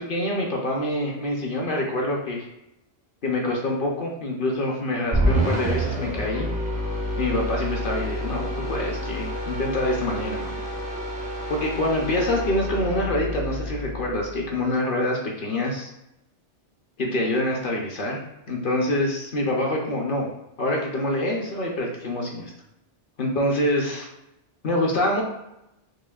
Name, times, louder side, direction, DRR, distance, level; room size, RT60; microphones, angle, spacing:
voice 1, 0.0-2.5 3.2-6.5 7.2-10.6 11.5-15.9 17.0-18.2 18.5-20.3 20.6-22.5 23.2-24.1 24.6-25.2, left 1 dB, 55° left, -1 dB, 0.8 m, -26 dB
sound 1, 5.1-14.5, equal, 10° right, 0.4 m, -28 dB
6.2 x 2.3 x 2.3 m, 0.89 s
omnidirectional pair, 1.2 m